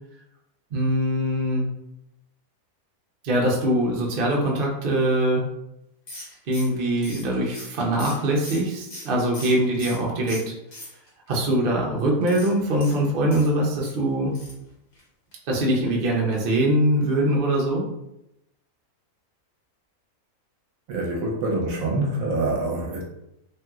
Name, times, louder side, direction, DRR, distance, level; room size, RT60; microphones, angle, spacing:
voice 1, 0.7-1.7 3.2-5.4 6.5-10.4 11.3-14.4 15.5-17.8, right 1 dB, 55° right, -2 dB, 0.6 m, -22 dB
sound 1, 6.1-10.0 10.3-11.3 12.2-14.0 14.3-14.7 14.9-15.0 15.3-15.4, left 1 dB, 35° left, 0.9 m, -40 dB
voice 2, 20.9-23.0, right 2 dB, 70° right, -1 dB, 1.1 m, -25 dB
3.0 x 2.8 x 2.3 m, 0.86 s
omnidirectional pair, 1.6 m